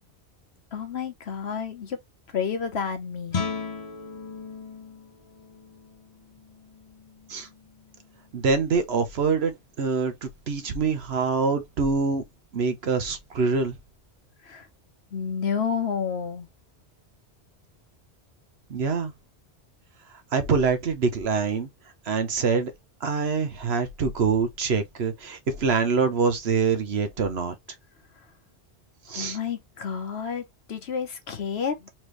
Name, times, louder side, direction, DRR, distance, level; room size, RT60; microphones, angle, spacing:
voice 1, 0.7-2.0 2.3-3.4 14.4-14.7 15.1-16.5 29.1-31.9, left 6 dB, 70° left, 1.3 m, -30 dB
Guitar, 3.3-8.8, left 5 dB, 40° left, 0.8 m, -38 dB
voice 2, 8.3-9.5 9.8-12.2 12.5-13.7 18.7-19.1 20.3-21.7 22.1-22.7 23.0-27.5 29.1-29.4, right 5 dB, 70° right, 1.2 m, -25 dB
4.5 x 3.1 x 3.1 m
omnidirectional pair, 1.2 m